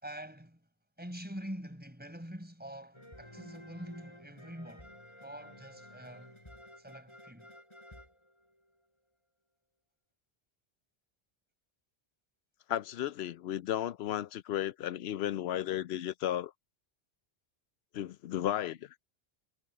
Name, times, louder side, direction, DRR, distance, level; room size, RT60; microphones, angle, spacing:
voice 1, 0.0-0.7 1.0-6.4 6.8-7.5, equal, 10° right, 4.7 m, -45 dB
sound 1, 2.9-8.8, equal, 25° left, 6.6 m, -53 dB
voice 2, 12.7-16.5 17.9-18.9, left 11 dB, 75° left, 0.8 m, -34 dB
omnidirectional pair, 1.1 m